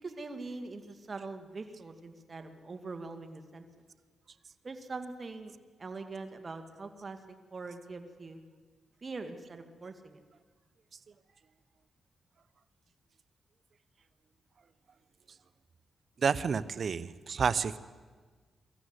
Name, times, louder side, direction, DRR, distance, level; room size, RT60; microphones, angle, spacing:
voice 1, 0.0-3.7 4.6-5.5 5.8-7.2 7.5-8.4 9.0-10.2, right 3 dB, 40° right, 7 dB, 2.2 m, -42 dB
voice 2, 16.2-17.8, right 6 dB, 55° right, 15 dB, 0.8 m, -29 dB
24.0 x 14.0 x 8.2 m, 1.5 s
cardioid pair, 75°, 0 cm